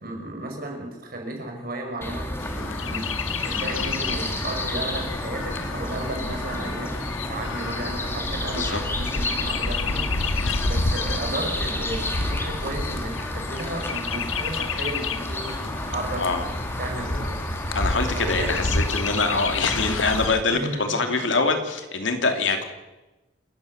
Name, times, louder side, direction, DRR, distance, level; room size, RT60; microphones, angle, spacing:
voice 1, 0.0-16.5 16.8-17.4 18.1-18.7 20.5-20.9, right 1 dB, 50° right, 2 dB, 5.6 m, -34 dB
sound 1, 2.0-20.3, left 1 dB, 10° left, 2.4 m, -31 dB
Chirp tweet, 2.4-20.4, left 3 dB, 85° left, 1.3 m, -30 dB
voice 2, 10.4-10.7 16.2-16.4 17.7-22.6, left 3 dB, 70° left, 5 dB, 2.8 m, -24 dB
28.5 x 14.0 x 6.6 m, 1.1 s
head